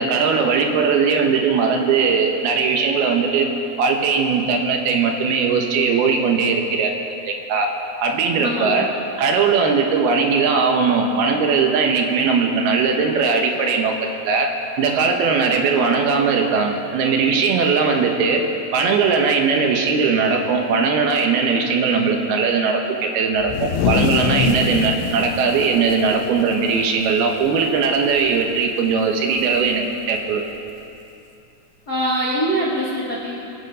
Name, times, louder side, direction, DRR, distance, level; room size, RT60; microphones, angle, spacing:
voice 1, 0.0-3.5 3.8-6.9 7.3-7.7 8.0-8.9 9.2-18.4 18.7-30.4, right 5 dB, 70° right, 3 dB, 2.7 m, -19 dB
voice 2, 8.4-8.9 31.9-33.3, equal, 55° left, -6 dB, 1.0 m, -23 dB
sound 1, 23.4-27.1 27.4-27.6 28.0-28.4 29.5-29.6 30.7-30.8, left 6 dB, 85° left, 3.2 m, -24 dB
24.0 x 8.9 x 5.4 m, 2.8 s
omnidirectional pair, 5.0 m